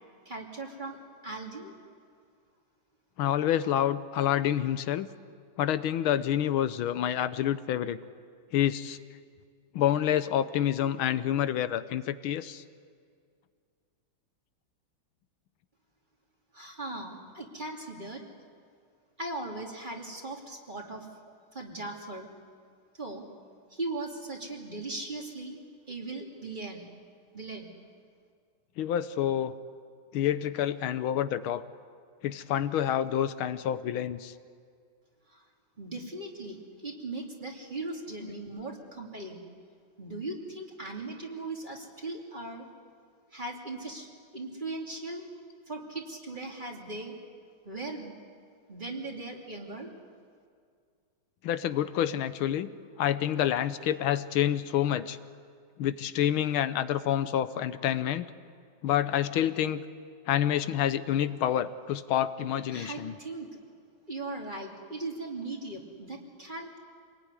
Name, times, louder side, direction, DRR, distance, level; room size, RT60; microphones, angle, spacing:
voice 1, 0.2-1.0 1.2-1.7 16.5-18.2 19.2-21.1 21.5-22.3 22.9-23.2 23.7-25.6 25.9-26.9 27.3-27.7 35.3-35.5 35.8-39.4 40.0-42.7 43.3-45.3 45.7-47.2 47.6-48.2 48.7-49.9 62.7-63.6 64.1-66.8, right 2 dB, 25° right, 0 dB, 2.9 m, -38 dB
voice 2, 3.2-5.1 5.6-8.0 8.5-9.0 9.7-12.6 28.8-29.5 30.1-31.6 32.2-34.3 51.4-52.7 53.0-55.2 55.8-58.3 58.8-59.8 60.3-63.2, left 10 dB, 90° left, 13 dB, 1.7 m, -28 dB
26.5 x 20.0 x 9.7 m, 2.2 s
omnidirectional pair, 2.2 m